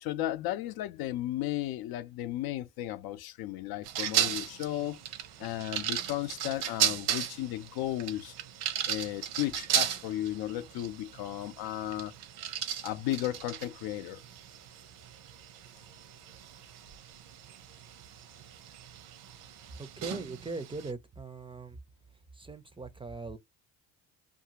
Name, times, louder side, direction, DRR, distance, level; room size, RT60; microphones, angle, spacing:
voice 1, 0.0-5.0 5.4-8.3 8.9-12.1 12.8-14.2, left 14 dB, 70° left, 0.5 m, -34 dB
sound 1, 3.8-20.9, right 10 dB, 80° right, 0.8 m, -36 dB
voice 2, 19.8-21.8 22.3-23.4, right 3 dB, 15° right, 0.4 m, -40 dB
2.6 x 2.4 x 2.8 m
cardioid pair, 95°, 38 cm